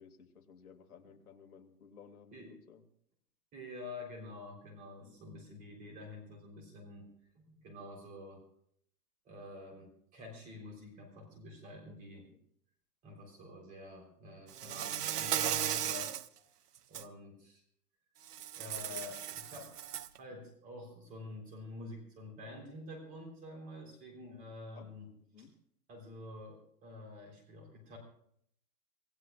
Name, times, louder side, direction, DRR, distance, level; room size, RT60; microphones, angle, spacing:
voice 1, 0.0-2.9 5.0-6.0 11.8-12.4 18.4-18.5 18.9-19.0 24.7-25.6, left 6 dB, 60° left, 3 dB, 2.4 m, -58 dB
voice 2, 3.5-7.1 7.4-8.4 9.2-12.3 13.0-16.1 16.4-16.5 16.9-17.6 18.5-19.8 20.2-25.1 25.9-28.0, left 2 dB, 15° right, 1 dB, 3.7 m, -48 dB
Insect, 14.5-16.3 16.8-17.0 18.3-20.2, right 10 dB, 65° right, 0.9 m, -36 dB
26.5 x 16.0 x 2.4 m, 0.69 s
hypercardioid pair, 165°, 50 cm